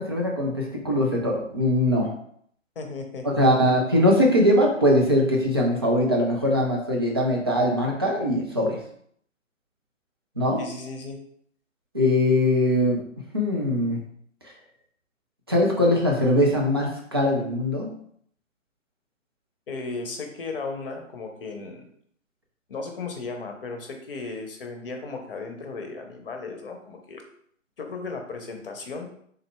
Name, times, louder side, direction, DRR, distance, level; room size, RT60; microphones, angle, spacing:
voice 1, 0.0-2.1 3.2-8.8 10.4-10.6 11.9-13.0 13.3-14.0 15.5-17.9, left 1 dB, 20° right, -1 dB, 0.4 m, -21 dB
voice 2, 2.8-3.5 10.6-11.2 19.7-21.9 22.7-27.2 27.8-29.1, left 3 dB, 45° left, 4 dB, 0.8 m, -35 dB
4.2 x 3.8 x 2.2 m, 0.65 s
figure-of-eight pair, 135°, 39 cm